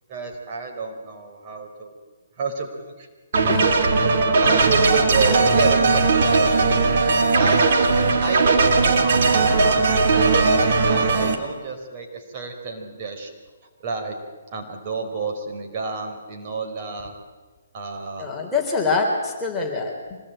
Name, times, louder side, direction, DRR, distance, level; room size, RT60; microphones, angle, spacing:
voice 1, 0.1-1.9 2.4-3.1 4.2-6.6 7.4-7.8 8.2-13.3 13.8-14.2 14.5-17.1 17.7-18.3, right 4 dB, 35° right, 3 dB, 4.7 m, -30 dB
sound 1, 3.3-11.3, right 3 dB, 55° right, 3.3 m, -18 dB
voice 2, 18.2-20.2, left 4 dB, 5° left, -2 dB, 3.7 m, -25 dB
25.5 x 20.0 x 9.1 m, 1.3 s
hypercardioid pair, 155°, 0 cm